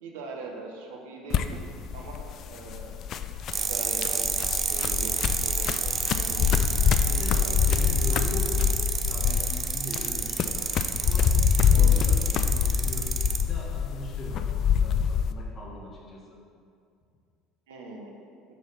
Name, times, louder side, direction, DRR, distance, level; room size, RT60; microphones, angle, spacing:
voice 1, 0.0-1.6 1.9-3.0 3.6-4.3 4.7-5.1 5.4-5.9 6.2-7.0 7.3-7.6 11.7-12.0 17.7-18.1, right 3 dB, 70° right, 0 dB, 1.1 m, -41 dB
sound 1, 1.3-15.3, left 7 dB, 50° left, 0.4 m, -25 dB
sound 2, 3.5-13.4, right 6 dB, 35° right, 0.6 m, -30 dB
voice 2, 7.0-8.7 9.1-11.4 11.7-13.1 13.4-14.5 14.8-16.4, left 1 dB, 30° left, -2 dB, 1.4 m, -40 dB
6.9 x 4.7 x 6.1 m, 2.4 s
figure-of-eight pair, 65°, 0 cm